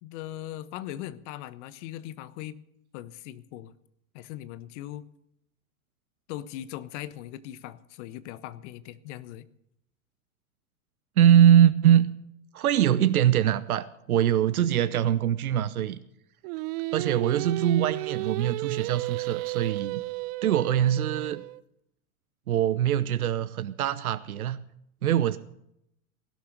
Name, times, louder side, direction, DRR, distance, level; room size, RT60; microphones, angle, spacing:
voice 1, 0.0-2.6 2.9-3.7 4.1-5.0 6.3-9.5, left 13 dB, 55° left, 16 dB, 1.2 m, -39 dB
voice 2, 11.2-12.1 12.5-16.0 16.9-20.0 20.4-21.4 22.5-24.6 25.0-25.4, right 10 dB, 80° right, 14 dB, 0.9 m, -22 dB
Singing, 16.4-21.6, right 22 dB, 45° right, 0.6 m, -33 dB
16.5 x 11.5 x 6.7 m, 0.76 s
hypercardioid pair, 100°, 42 cm